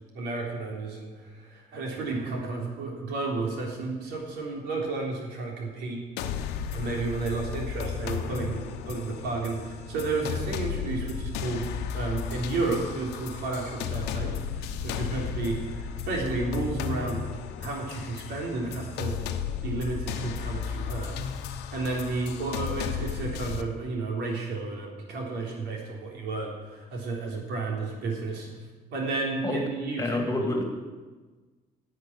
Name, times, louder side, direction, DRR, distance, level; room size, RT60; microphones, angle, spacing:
voice 1, 0.1-6.0 6.7-8.6 8.9-11.7 11.9-17.2 17.6-19.2 19.6-28.5 28.9-30.2, right 3 dB, 80° right, 0 dB, 3.6 m, -32 dB
sound 1, 6.2-23.6, left 8 dB, 85° left, 1.0 m, -34 dB
voice 2, 30.0-30.6, left 2 dB, 20° left, 3 dB, 2.4 m, -27 dB
10.5 x 8.0 x 10.0 m, 1.3 s
cardioid pair, 110°, 17 cm